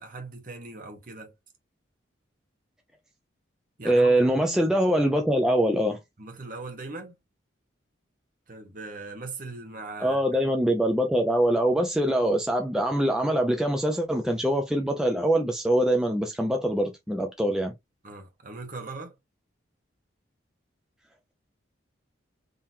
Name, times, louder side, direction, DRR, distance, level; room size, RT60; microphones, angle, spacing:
voice 1, 0.0-1.3 3.8-4.2 6.2-7.1 8.5-10.4 18.0-19.2, right 3 dB, 45° right, 1.0 m, -40 dB
voice 2, 3.8-6.0 10.0-17.7, right 1 dB, 5° right, 0.4 m, -23 dB
3.7 x 2.8 x 2.6 m
head